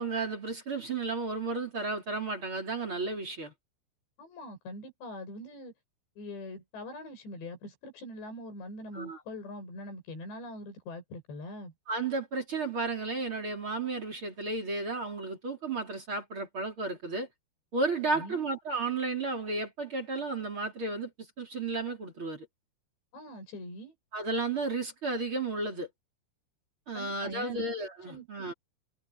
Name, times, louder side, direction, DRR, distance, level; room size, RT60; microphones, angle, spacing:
voice 1, 0.0-3.5 8.9-9.2 11.9-17.3 17.7-22.5 24.1-25.9 26.9-28.5, right 3 dB, 30° right, 4.0 m, -33 dB
voice 2, 4.2-5.7 6.2-11.7 18.1-18.4 23.1-23.9 26.9-27.6 28.1-28.3, left 1 dB, 90° left, 8.9 m, -43 dB
omnidirectional pair, 4.9 m